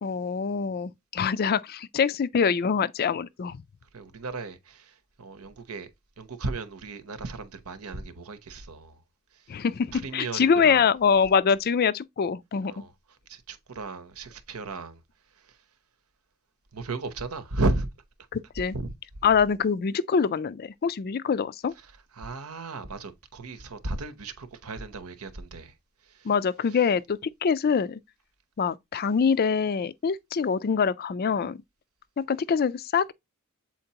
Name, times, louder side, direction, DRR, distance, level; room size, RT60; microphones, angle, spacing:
voice 1, 0.0-3.6 9.5-12.7 18.3-18.8 19.2-21.7 26.2-28.0 28.6-31.6 32.2-33.1, left 6 dB, 45° left, 0.4 m, -24 dB
voice 2, 3.9-5.9 6.2-9.0 9.3-9.6 9.9-10.9 12.7-12.9 13.3-15.0 15.3-15.6 16.7-17.9 18.7-18.9 21.8-25.7 26.0-26.3 26.7-26.8, right 3 dB, 80° right, 0.9 m, -35 dB
7.8 x 4.4 x 2.9 m
head